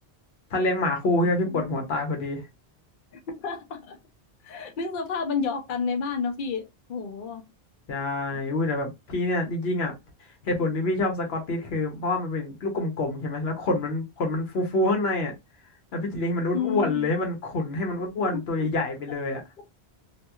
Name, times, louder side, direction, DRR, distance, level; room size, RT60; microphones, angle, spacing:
voice 1, 0.5-2.5 7.9-9.9 10.4-15.3 15.9-19.4, left 2 dB, 80° left, 1.1 m, -27 dB
voice 2, 3.1-4.0 4.4-7.4 16.5-17.1 18.2-18.7 19.3-19.4, left 5 dB, 60° left, 0.7 m, -31 dB
2.9 x 2.4 x 2.3 m
omnidirectional pair, 1.1 m